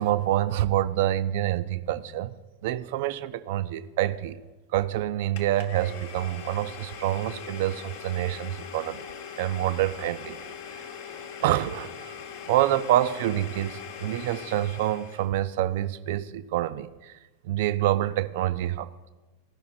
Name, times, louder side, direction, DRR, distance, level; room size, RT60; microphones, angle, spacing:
voice 1, 0.0-2.3 2.6-4.4 4.7-9.1 9.4-10.4 11.4-12.1 12.5-17.1 17.4-19.1, right 13 dB, 50° right, 15 dB, 0.4 m, -27 dB
Domestic sounds home sounds, 5.3-15.3, left 7 dB, 50° left, 0.9 m, -41 dB
15.0 x 5.6 x 4.2 m, 1.2 s
figure-of-eight pair, 90°, 0 cm